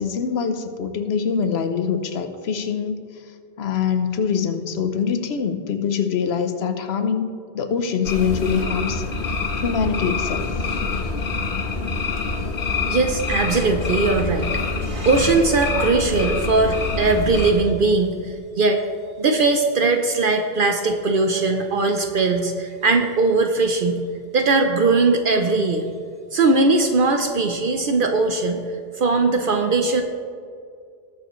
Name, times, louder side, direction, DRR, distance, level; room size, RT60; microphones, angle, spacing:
voice 1, 0.0-2.9 3.6-10.5, left 6 dB, 85° left, 7 dB, 1.0 m, -24 dB
sound 1, 8.0-17.5, left 4 dB, 60° left, 1.2 m, -26 dB
voice 2, 12.9-14.5 14.8-18.8 19.2-24.0 24.3-25.9 26.3-28.6 29.0-30.0, right 3 dB, 60° right, 4 dB, 0.8 m, -20 dB
19.5 x 6.7 x 3.1 m, 2.2 s
omnidirectional pair, 1.0 m